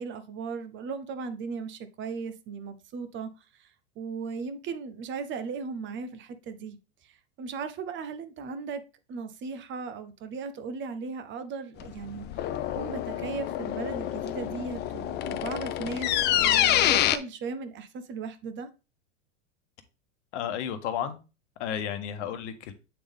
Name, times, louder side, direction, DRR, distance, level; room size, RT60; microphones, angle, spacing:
voice 1, 0.0-3.3 4.0-6.8 7.4-8.8 9.1-12.3 12.8-18.7, right 5 dB, 30° right, 0.8 m, -37 dB
sound 1, 11.8-17.2, left 12 dB, 30° left, 0.4 m, -27 dB
voice 2, 20.3-21.2 21.6-22.7, left 9 dB, 65° left, 1.1 m, -32 dB
7.9 x 3.6 x 3.5 m
hypercardioid pair, 105°, 38 cm